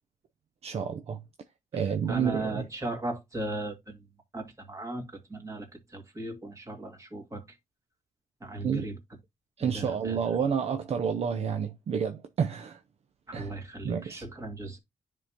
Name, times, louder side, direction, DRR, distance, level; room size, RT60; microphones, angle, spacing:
voice 1, 0.6-1.2 1.7-2.7 8.6-8.9 9.6-12.8 13.3-13.5 13.8-14.2, right 7 dB, 55° right, 0.5 m, -29 dB
voice 2, 2.1-4.0 4.3-7.4 8.4-9.0 9.6-10.2 13.3-14.8, right 2 dB, 25° right, 2.0 m, -37 dB
9.9 x 3.6 x 2.8 m
cardioid pair, 90°, 13 cm